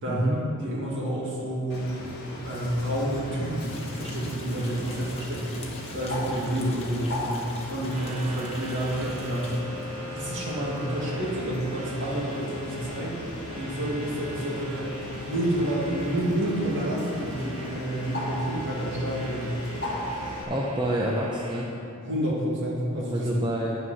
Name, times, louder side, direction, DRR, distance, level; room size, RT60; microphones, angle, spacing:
voice 1, 0.1-0.4 20.4-21.7 23.1-23.8, right 1 dB, 20° right, -3 dB, 0.7 m, -28 dB
voice 2, 0.6-1.9 2.4-5.6 5.9-7.4 7.7-9.5 10.1-13.1 13.6-14.9 15.3-19.5 22.0-23.3, right 1 dB, 55° right, -4 dB, 2.1 m, -29 dB
Bird, 1.7-20.4, left 1 dB, 50° left, 1.7 m, -37 dB
sound 1, 3.6-9.6, left 3 dB, 30° left, 1.1 m, -46 dB
sound 2, 7.9-21.7, equal, 75° right, 1.6 m, -40 dB
9.5 x 6.3 x 5.6 m, 2.6 s
head